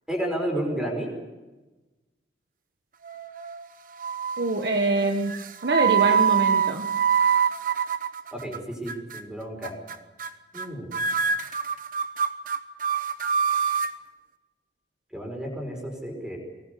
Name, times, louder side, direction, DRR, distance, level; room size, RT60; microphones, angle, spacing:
voice 1, 0.1-1.1 8.3-9.7 10.5-10.9 15.1-16.4, right 1 dB, 5° right, 1 dB, 5.1 m, -31 dB
sound 1, 3.0-3.6 4.0-4.5 5.3-8.6 8.9-9.2 9.6-9.9 10.2-10.3 10.5-10.7 10.9-13.9, right 7 dB, 50° right, 1.0 m, -25 dB
voice 2, 4.4-6.9, right 2 dB, 70° right, 3 dB, 1.5 m, -25 dB
23.5 x 20.0 x 6.9 m, 1.1 s
head